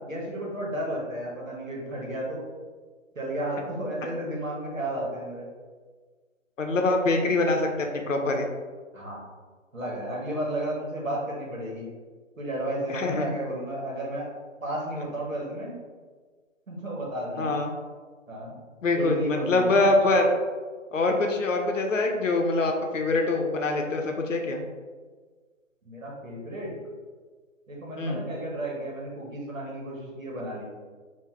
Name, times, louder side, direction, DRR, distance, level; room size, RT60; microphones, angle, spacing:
voice 1, 0.0-2.4 3.1-5.5 8.9-9.2 9.7-11.9 12.4-14.3 14.6-15.7 16.7-17.5 18.3-18.5 18.9-19.9 25.8-26.7 27.7-30.6, right 1 dB, 80° right, -3 dB, 1.4 m, -33 dB
voice 2, 6.6-8.5 12.9-13.3 17.4-17.7 18.8-20.3 20.9-24.6 28.0-28.2, left 2 dB, 70° left, 3 dB, 0.7 m, -24 dB
3.6 x 2.8 x 2.9 m, 1.5 s
figure-of-eight pair, 135°, 39 cm